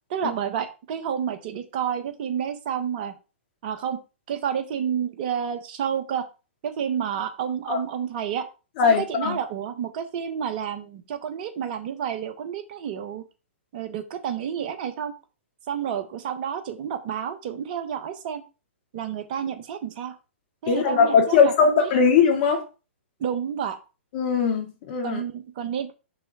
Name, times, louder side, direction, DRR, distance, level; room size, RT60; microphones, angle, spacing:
voice 1, 0.1-3.1 3.6-4.0 4.3-6.3 6.6-8.5 8.8-13.2 13.7-15.1 15.7-18.4 18.9-20.1 20.6-21.9 23.2-23.8 25.0-25.9, right 8 dB, 45° right, 1.2 m, -30 dB
voice 2, 8.8-9.4 20.7-22.6 24.1-25.2, left 6 dB, 45° left, 2.2 m, -20 dB
6.1 x 5.8 x 3.6 m
hypercardioid pair, 125°, 7 cm